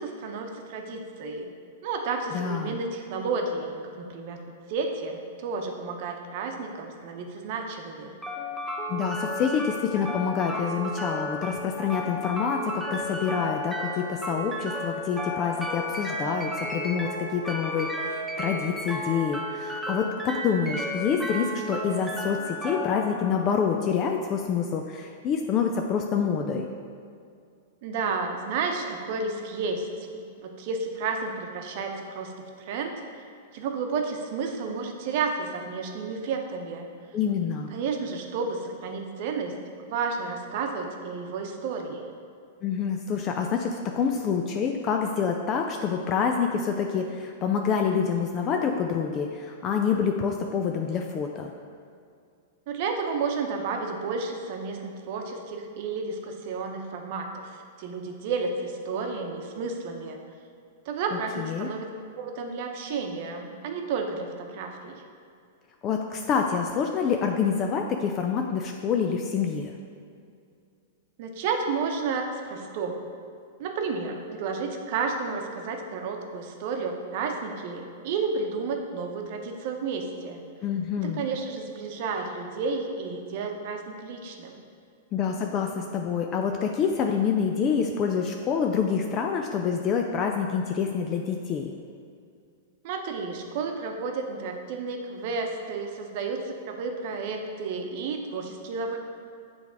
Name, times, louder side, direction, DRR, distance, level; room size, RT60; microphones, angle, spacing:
voice 1, 0.0-1.5 1.8-4.4 4.7-8.1 27.8-32.3 32.6-33.0 33.5-36.9 37.7-42.1 52.7-60.2 60.9-61.9 62.1-65.0 71.2-73.0 73.6-80.4 81.0-84.6 92.8-99.0, right 4 dB, 55° right, 3 dB, 0.8 m, -31 dB
voice 2, 2.3-2.8 8.9-26.7 37.1-37.7 42.6-51.5 61.4-61.7 65.8-69.7 80.6-81.2 85.1-91.7, left 6 dB, 35° left, 3 dB, 0.4 m, -27 dB
sound 1, 8.2-24.2, equal, ahead, 0.7 m, -33 dB
7.1 x 3.4 x 4.8 m, 2.3 s
hypercardioid pair, 125°, 0 cm